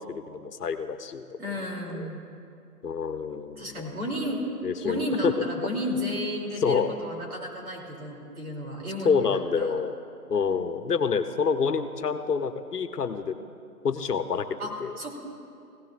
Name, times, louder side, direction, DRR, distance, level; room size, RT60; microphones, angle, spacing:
voice 1, 0.0-1.3 1.9-2.1 2.8-4.0 4.6-5.3 6.6-6.9 9.0-10.0 10.3-13.4 13.8-14.5 14.8-14.9, left 6 dB, 80° left, 9 dB, 0.9 m, -27 dB
voice 2, 1.4-2.2 3.6-4.4 4.8-9.8 14.6-15.2, equal, 65° right, 0 dB, 3.1 m, -32 dB
16.5 x 14.5 x 2.5 m, 2.5 s
hypercardioid pair, 165°, 46 cm